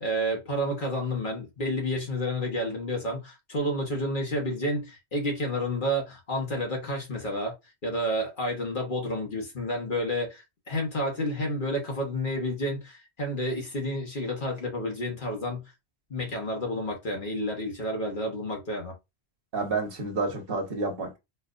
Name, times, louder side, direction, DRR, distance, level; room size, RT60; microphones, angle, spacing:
voice 1, 0.0-7.5 7.8-15.7 16.1-19.0, equal, 50° left, 1.3 m, -30 dB
voice 2, 19.5-21.2, right 3 dB, 60° right, 1.3 m, -29 dB
4.3 x 2.6 x 2.5 m
omnidirectional pair, 1.1 m